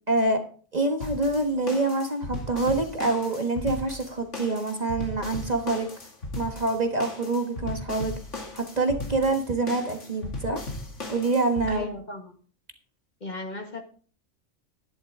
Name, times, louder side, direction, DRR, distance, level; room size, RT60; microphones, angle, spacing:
voice 1, 0.1-0.4 0.7-5.9 6.4-8.1 8.5-10.6 11.1-11.9, right 2 dB, 35° right, 5 dB, 1.6 m, -26 dB
sound 1, 1.0-11.7, left 2 dB, 75° left, 2.6 m, -37 dB
voice 2, 11.7-12.3 13.2-13.8, left 2 dB, 35° left, 4 dB, 1.7 m, -36 dB
11.5 x 11.5 x 3.7 m, 0.42 s
omnidirectional pair, 1.3 m